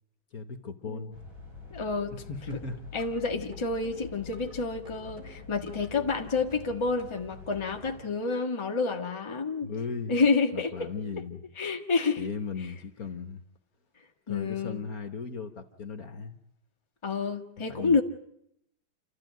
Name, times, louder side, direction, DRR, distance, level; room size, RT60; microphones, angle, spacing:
voice 1, 0.3-1.2 2.1-2.8 9.6-10.2 10.5-11.4 12.2-13.4 14.3-16.4 17.7-18.0, left 5 dB, 50° left, 1.5 m, -37 dB
sound 1, 1.1-8.1, left 3 dB, 80° right, 9.0 m, -46 dB
voice 2, 1.7-2.1 2.9-9.7 10.1-10.9 11.6-12.3 14.3-14.8 17.0-18.0, left 4 dB, 15° left, 1.3 m, -29 dB
sound 2, 2.5-3.2 3.5-4.6 4.8-5.9 6.2-7.2 7.5-7.6, right 1 dB, 15° right, 7.2 m, -52 dB
28.0 x 14.0 x 9.2 m
omnidirectional pair, 2.2 m